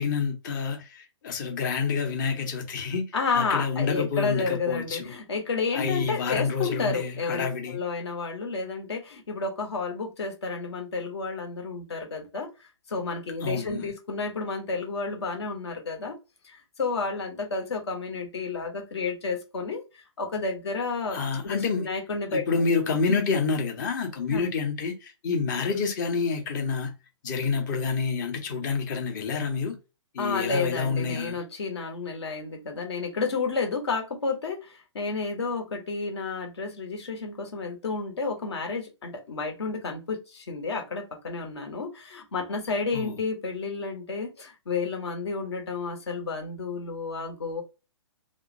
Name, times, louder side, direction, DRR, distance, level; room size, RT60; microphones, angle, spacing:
voice 1, 0.0-5.1 5.7-7.8 13.4-13.9 21.1-21.9 22.3-26.9 27.2-29.8 30.1-31.4 42.9-43.2, left 5 dB, 40° left, 1.0 m, -28 dB
voice 2, 3.1-16.2 16.4-19.8 20.2-21.2 21.4-22.5 24.3-24.5 30.2-47.6, left 4 dB, 60° left, 1.2 m, -31 dB
3.1 x 2.7 x 2.6 m
figure-of-eight pair, 120°, 16 cm